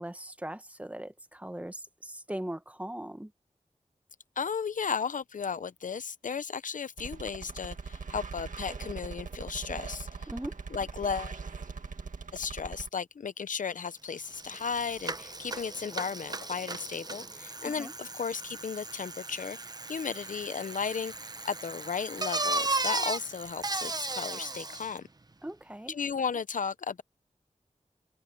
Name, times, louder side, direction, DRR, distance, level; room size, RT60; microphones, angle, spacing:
voice 1, 0.0-3.3 10.3-10.6 17.6-17.9 25.4-26.0, right 1 dB, 10° right, 1.1 m, -39 dB
voice 2, 4.4-10.3 10.7-11.4 12.3-19.6 19.9-21.1 21.4-25.1 25.9-27.0, left 6 dB, 85° left, 0.7 m, -35 dB
sound 1, 7.0-12.9, right 4 dB, 85° right, 1.9 m, -41 dB
Bicycle, 13.9-14.0 14.2-25.0, right 3 dB, 30° right, 0.9 m, -36 dB
wide cardioid pair, 90°, 13 cm